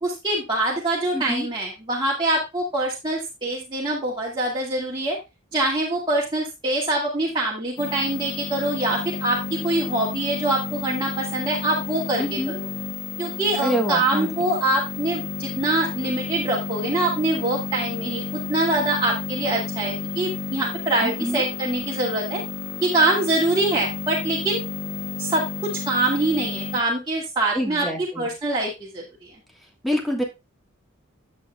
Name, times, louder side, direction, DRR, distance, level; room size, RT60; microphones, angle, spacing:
voice 1, 0.0-5.2 5.5-12.6 13.2-18.2 18.5-22.4 22.8-24.6 25.2-27.9 28.2-29.3, right 2 dB, 20° right, -4 dB, 2.1 m, -24 dB
voice 2, 1.1-1.5 12.2-12.6 13.6-14.3 21.0-21.4 27.5-28.3 29.8-30.2, equal, ahead, 0 dB, 1.5 m, -26 dB
sound 1, 7.8-26.8, left 4 dB, 50° left, 1.0 m, -32 dB
9.7 x 8.3 x 2.3 m, 0.24 s
head